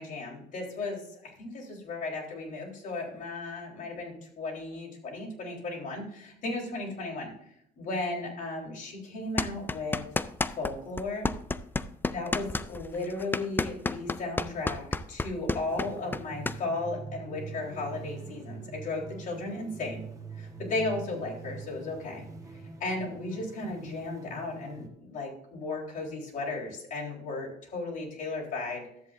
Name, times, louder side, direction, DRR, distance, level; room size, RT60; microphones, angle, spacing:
voice 1, 0.0-7.3 7.8-10.0 10.6-11.3 12.1-20.0 20.3-22.2 22.8-28.8, left 2 dB, 50° left, -3 dB, 3.8 m, -35 dB
sound 1, 9.4-10.7 11.0-16.6, left 3 dB, 10° left, 0.3 m, -30 dB
sound 2, 15.7-24.9, right 4 dB, 20° right, 1.3 m, -44 dB
13.0 x 8.2 x 2.6 m, 0.73 s
cardioid pair, 110°, 17 cm